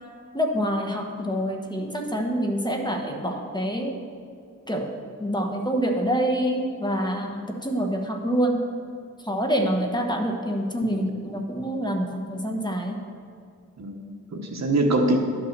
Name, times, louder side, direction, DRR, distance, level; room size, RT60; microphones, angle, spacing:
voice 1, 0.3-3.9 4.7-4.9 5.2-8.6 9.3-13.0, equal, 15° left, 2 dB, 1.1 m, -26 dB
voice 2, 13.8-15.2, right 2 dB, 60° right, 2 dB, 1.2 m, -24 dB
11.5 x 5.9 x 6.6 m, 2.3 s
wide cardioid pair, 95°, 31 cm